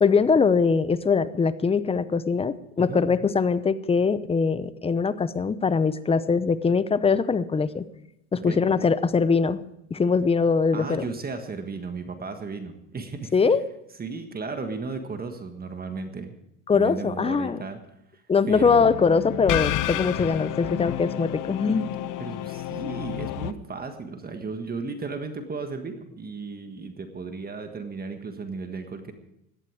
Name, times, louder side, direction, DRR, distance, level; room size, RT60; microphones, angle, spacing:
voice 1, 0.0-7.8 8.3-9.6 9.9-11.0 13.3-13.6 16.7-17.6 18.3-21.9, left 5 dB, 15° left, 15 dB, 0.7 m, -22 dB
voice 2, 10.7-13.3 14.0-16.4 16.7-17.8 18.1-18.9 22.2-29.1, right 4 dB, 20° right, 7 dB, 1.6 m, -35 dB
sound 1, 18.5-23.5, left 13 dB, 50° left, 1.0 m, -30 dB
17.5 x 11.5 x 4.9 m, 0.79 s
supercardioid pair, 115°, 41 cm